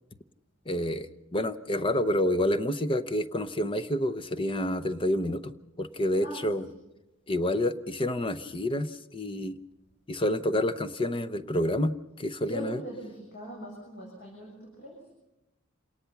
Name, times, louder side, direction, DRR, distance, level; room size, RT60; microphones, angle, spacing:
voice 1, 0.7-5.5 5.8-6.7 7.3-9.6 10.1-12.8, left 1 dB, 25° left, 13 dB, 0.8 m, -28 dB
voice 2, 6.2-6.6 12.5-15.0, right 1 dB, 55° left, -3 dB, 7.6 m, -41 dB
28.0 x 18.5 x 5.9 m, 0.96 s
head